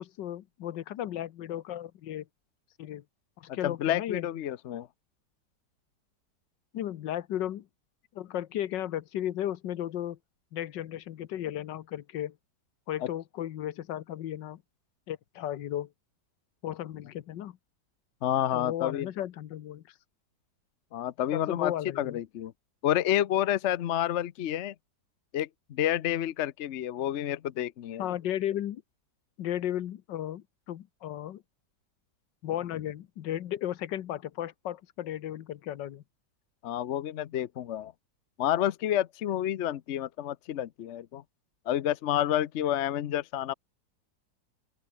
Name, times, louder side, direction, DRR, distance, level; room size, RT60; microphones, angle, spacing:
voice 1, 0.0-2.2 2.8-3.0 3.4-4.3 6.7-7.7 8.1-10.2 10.5-12.3 12.9-14.6 15.1-15.9 16.6-17.6 18.5-19.8 21.3-22.2 28.0-28.8 29.4-31.4 32.4-36.0, left 11 dB, 85° left, 1.6 m, -35 dB
voice 2, 3.5-4.9 13.0-13.1 18.2-19.1 20.9-22.5 22.8-24.7 25.3-28.0 36.6-37.9 38.4-41.2 41.7-43.5, left 11 dB, 65° left, 0.7 m, -29 dB
open air
omnidirectional pair, 1.9 m